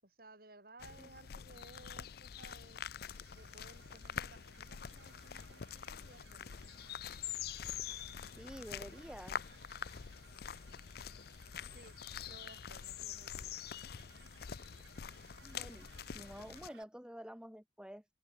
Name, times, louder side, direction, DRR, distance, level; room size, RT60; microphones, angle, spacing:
voice 1, 0.0-2.8 3.3-6.6 11.6-11.9 12.3-13.5, right 2 dB, 50° right, 5.9 m, -59 dB
sound 1, 0.8-16.7, left 8 dB, 55° left, 0.5 m, -46 dB
sound 2, 3.1-16.8, right 5 dB, 70° right, 2.1 m, -63 dB
voice 2, 8.4-9.4 15.4-18.0, equal, 5° right, 1.2 m, -49 dB
head